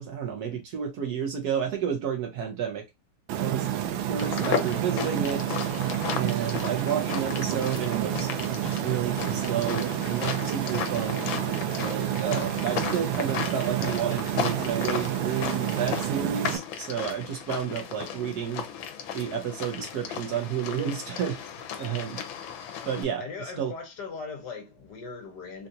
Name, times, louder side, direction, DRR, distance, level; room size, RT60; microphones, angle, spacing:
voice 1, 0.0-2.8 3.4-3.7 4.0-5.6 6.1-11.3 11.8-18.6 19.1-21.4 21.8-22.2 22.9-23.2 23.6-23.7, right 8 dB, 65° right, 1.1 m, -31 dB
sound 1, 3.3-16.6, right 11 dB, 85° right, 1.4 m, -29 dB
sound 2, 4.2-23.0, left 8 dB, 85° left, 1.4 m, -35 dB
voice 2, 23.2-25.7, left 4 dB, 65° left, 1.4 m, -39 dB
3.9 x 2.3 x 2.6 m
omnidirectional pair, 2.1 m